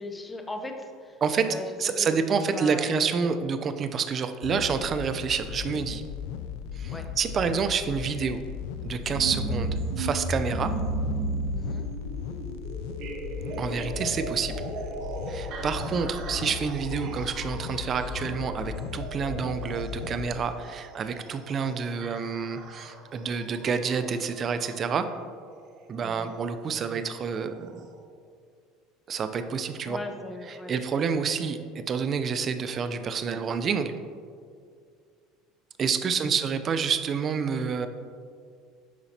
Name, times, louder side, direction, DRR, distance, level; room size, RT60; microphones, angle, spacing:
voice 1, 0.0-3.0 6.9-7.1 11.5-11.8 26.0-26.3 29.9-30.7 36.0-36.3, left 2 dB, 15° left, 4 dB, 0.7 m, -38 dB
voice 2, 1.2-6.0 6.7-8.4 8.8-9.7 10.0-10.7 13.6-14.6 15.3-25.1 25.9-27.8 29.1-30.0 30.5-33.9 35.8-37.9, right 6 dB, 35° right, 9 dB, 0.4 m, -28 dB
sound 1, 4.4-20.4, left 8 dB, 80° left, 0.3 m, -37 dB
sound 2, 9.0-24.9 26.1-26.2 27.0-27.1 27.8-27.9, right 2 dB, 55° right, 0.8 m, -35 dB
11.0 x 4.0 x 2.8 m, 2.1 s
supercardioid pair, 115°, 0 cm